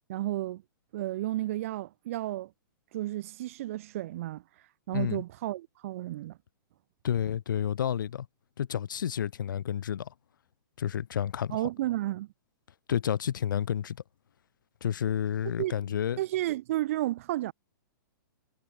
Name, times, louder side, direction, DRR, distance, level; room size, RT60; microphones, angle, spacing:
voice 1, 0.1-0.6 0.9-2.5 2.9-4.4 4.9-6.4 11.5-12.3 15.6-15.7 16.2-17.5, right 15 dB, 40° right, 3.1 m, -32 dB
voice 2, 4.9-5.2 7.0-8.3 8.6-10.1 10.8-11.7 12.9-14.0 14.8-16.2, left 9 dB, 65° left, 4.1 m, -30 dB
hypercardioid pair, 170°, 11 cm